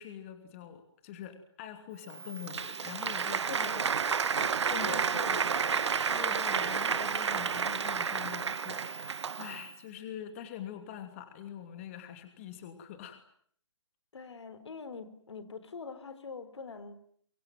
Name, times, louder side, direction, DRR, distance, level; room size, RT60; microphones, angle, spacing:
voice 1, 0.0-3.7 4.7-5.4 6.1-13.2, left 10 dB, 25° left, 7 dB, 2.7 m, -44 dB
Applause, 2.1-9.7, right 6 dB, 70° right, 1.6 m, -31 dB
voice 2, 3.5-3.9 4.4-6.0 14.1-17.0, left 5 dB, 70° left, 13 dB, 4.1 m, -44 dB
24.5 x 23.5 x 9.3 m, 0.63 s
hypercardioid pair, 165°, 15 cm